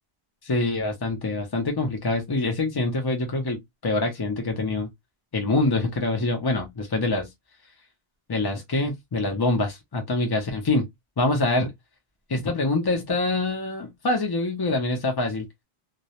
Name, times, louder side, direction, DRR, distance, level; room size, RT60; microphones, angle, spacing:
voice 1, 0.4-4.9 5.3-7.3 8.3-10.9 11.2-11.7 12.3-15.5, left 2 dB, 40° left, 0.3 m, -25 dB
2.2 x 2.0 x 2.7 m
omnidirectional pair, 1.1 m